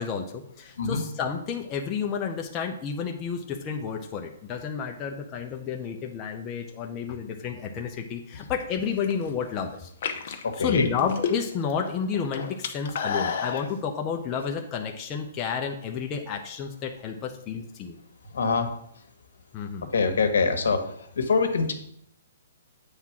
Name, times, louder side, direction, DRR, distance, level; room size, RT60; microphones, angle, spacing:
voice 1, 0.0-9.9 10.3-18.0 19.5-19.9, left 6 dB, 20° left, 2 dB, 0.6 m, -31 dB
sound 1, 8.8-9.3 9.9-11.7 12.0-13.7, left 6 dB, 50° left, 0.8 m, -30 dB
voice 2, 10.4-10.9 18.3-18.7 19.9-20.8 21.2-21.7, left 4 dB, 80° left, 6 dB, 1.3 m, -24 dB
7.9 x 3.6 x 5.8 m, 0.70 s
hypercardioid pair, 160°, 0 cm